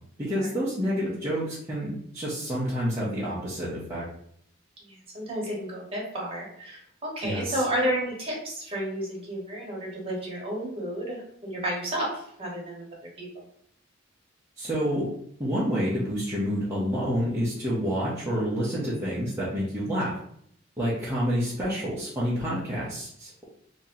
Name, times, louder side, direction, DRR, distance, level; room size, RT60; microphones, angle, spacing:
voice 1, 0.2-4.0 7.2-7.6 14.6-15.1 15.4-20.2 20.8-23.4, equal, 15° right, -10 dB, 0.8 m, -28 dB
voice 2, 4.8-12.8 13.2-13.4, right 1 dB, 30° right, -3 dB, 1.3 m, -32 dB
3.0 x 2.8 x 3.8 m, 0.67 s
head